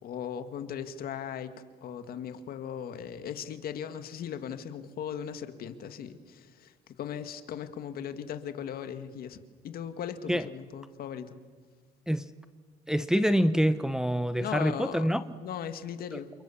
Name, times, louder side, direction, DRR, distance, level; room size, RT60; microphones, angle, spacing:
voice 1, 0.0-1.5 1.8-6.7 7.0-9.4 9.6-11.4 14.4-15.1 15.4-16.3, left 8 dB, 60° left, 2.0 m, -38 dB
voice 2, 12.9-15.2 16.1-16.2, equal, 5° right, 0.9 m, -26 dB
29.0 x 28.5 x 7.3 m
cardioid pair, 110°, 17 cm